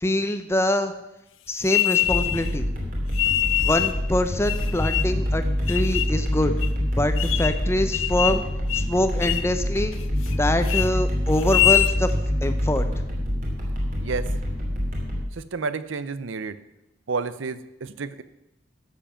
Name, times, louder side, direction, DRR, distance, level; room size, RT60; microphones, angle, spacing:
voice 1, 0.0-0.9 1.5-2.7 3.6-6.5 6.9-8.4 8.7-9.9 10.3-12.1 12.4-12.8, left 1 dB, 15° left, 9 dB, 0.7 m, -24 dB
sound 1, 1.7-2.5 3.1-4.0 4.4-5.2 5.7-6.2 6.6-6.7 7.2-7.6 7.9-8.4 8.7-8.9 9.2-9.5 9.9-10.3 10.6-10.9 11.4-12.0, left 13 dB, 70° left, 0.5 m, -24 dB
sound 2, 2.1-15.2, equal, 40° right, 2.8 m, -26 dB
voice 2, 14.0-14.3 15.3-16.6 17.1-18.2, right 4 dB, 65° right, 14 dB, 0.6 m, -30 dB
12.0 x 7.6 x 5.7 m, 0.92 s
head